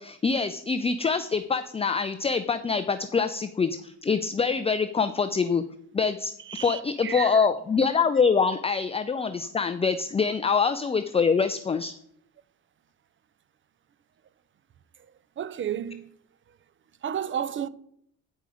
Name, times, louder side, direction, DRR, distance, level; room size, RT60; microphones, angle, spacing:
voice 1, 0.0-5.6 5.9-6.3 6.6-11.9, left 5 dB, 20° left, 0.5 m, -25 dB
voice 2, 6.4-7.5 15.4-16.2 17.0-17.7, right 9 dB, 40° right, 0.5 m, -32 dB
9.1 x 5.5 x 4.9 m
cardioid pair, 90°, 31 cm